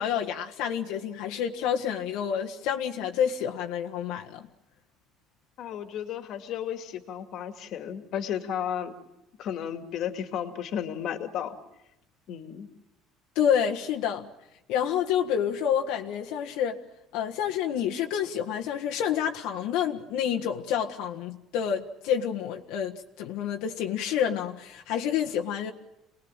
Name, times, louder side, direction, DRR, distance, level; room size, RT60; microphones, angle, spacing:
voice 1, 0.0-4.5 13.3-14.3 14.7-16.8 17.1-25.7, left 8 dB, 80° left, 1.6 m, -28 dB
voice 2, 5.6-8.9 9.4-11.6 12.3-12.7, left 9 dB, 50° left, 2.2 m, -33 dB
28.5 x 20.5 x 9.0 m
cardioid pair, 170°, 0 cm